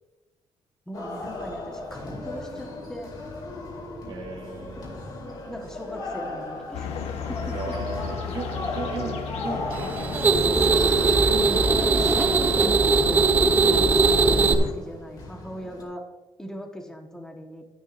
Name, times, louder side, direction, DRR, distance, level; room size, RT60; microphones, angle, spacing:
sound 1, 0.9-15.8, left 2 dB, 40° left, 2.6 m, -37 dB
voice 1, 0.9-3.1 5.5-6.9 7.3-7.6 11.3-11.7 12.0-16.0 16.4-17.6, equal, 5° left, 2 dB, 1.3 m, -39 dB
voice 2, 4.1-5.0 7.5-10.9, right 3 dB, 55° right, 1 dB, 1.8 m, -36 dB
sound 2, 6.7-14.7, left 6 dB, 75° left, 1.1 m, -34 dB
sound 3, 9.7-14.5, right 4 dB, 15° right, 0.6 m, -20 dB
12.5 x 10.0 x 2.6 m, 1.1 s
cardioid pair, 175°, 11 cm